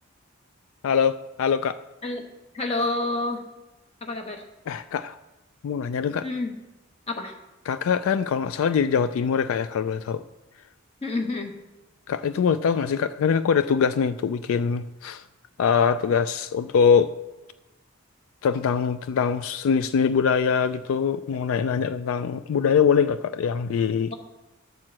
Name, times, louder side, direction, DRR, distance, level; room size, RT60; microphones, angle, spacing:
voice 1, 0.8-1.8 4.7-5.2 5.6-6.3 7.7-10.2 12.1-15.2 15.6-17.1 18.4-24.1, left 6 dB, 75° left, 0.3 m, -23 dB
voice 2, 2.5-3.4 4.0-4.4 6.2-6.5 7.1-7.3 11.0-11.5 24.1-24.2, left 2 dB, 30° left, 1.1 m, -28 dB
10.5 x 4.6 x 7.4 m
head